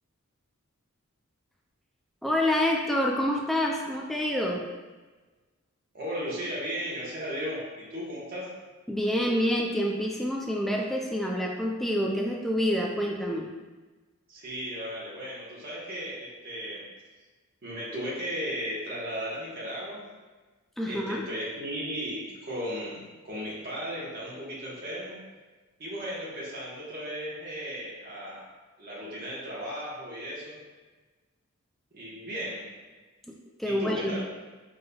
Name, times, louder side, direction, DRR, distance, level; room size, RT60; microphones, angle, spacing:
voice 1, 2.2-4.7 8.9-13.5 20.8-21.2 33.3-33.4 33.6-34.1, left 1 dB, ahead, -1 dB, 0.3 m, -27 dB
voice 2, 5.9-8.5 14.3-16.9 17.6-20.1 20.9-25.2 25.8-28.5 28.8-30.6 31.9-32.8 33.6-34.2, equal, 45° right, -7 dB, 1.1 m, -36 dB
5.2 x 3.7 x 2.3 m, 1.3 s
head